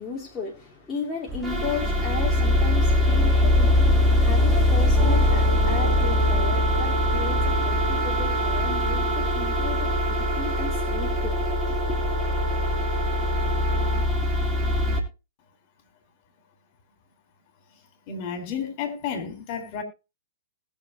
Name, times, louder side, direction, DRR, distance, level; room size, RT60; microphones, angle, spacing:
voice 1, 0.0-12.1, left 4 dB, 15° left, 2.6 m, -34 dB
sound 1, 1.3-15.0, left 1 dB, 10° right, 2.9 m, -22 dB
Wind instrument woodwind instrument, 4.9-14.1, right 4 dB, 65° right, 4.0 m, -30 dB
voice 2, 18.1-19.8, left 7 dB, 40° left, 3.8 m, -31 dB
20.0 x 6.8 x 2.8 m
figure-of-eight pair, 115°, 0 cm